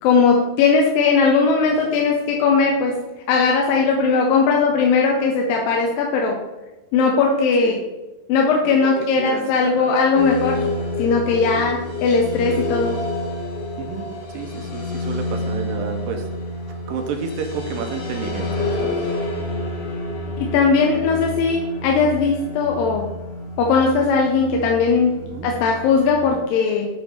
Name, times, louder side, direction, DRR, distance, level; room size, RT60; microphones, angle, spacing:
voice 1, 0.0-2.9 3.3-6.4 6.9-7.8 8.3-10.6 11.0-13.0 20.4-23.0 23.6-25.1 25.4-26.9, left 4 dB, 85° left, 0 dB, 2.5 m, -18 dB
voice 2, 8.6-9.9 11.4-11.7 13.8-14.1 14.3-16.3 16.9-19.0 25.2-25.5, right 5 dB, 80° right, 4 dB, 2.3 m, -31 dB
sound 1, 10.2-26.3, left 2 dB, 55° left, 1.7 m, -29 dB
8.5 x 3.5 x 5.5 m, 1.1 s
omnidirectional pair, 4.0 m